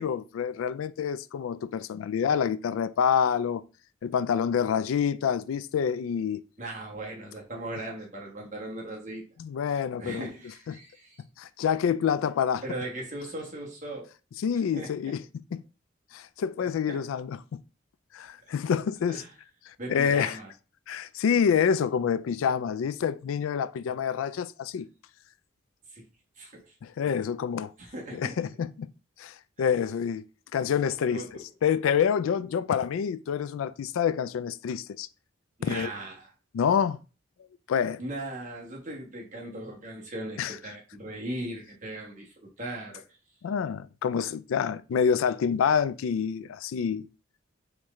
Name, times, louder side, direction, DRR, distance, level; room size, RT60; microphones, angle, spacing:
voice 1, 0.0-3.6 4.0-6.4 9.4-10.3 10.7-10.8 11.4-12.6 14.4-15.6 16.1-17.6 18.1-19.2 19.9-20.4 20.9-24.9 26.8-27.7 28.1-28.9 29.2-30.2 30.5-31.2 31.6-35.1 35.6-35.9 36.5-37.0 37.7-38.0 40.4-40.5 43.4-47.1, left 7 dB, 80° left, 0.3 m, -27 dB
voice 2, 6.6-9.2 10.0-11.2 12.6-14.1 14.7-15.2 16.6-17.0 19.1-19.3 19.8-20.5 25.9-26.1 26.4-26.7 27.8-28.4 31.1-31.4 35.6-36.3 38.0-43.0, right 1 dB, 40° right, 1.2 m, -38 dB
4.5 x 3.1 x 3.6 m
head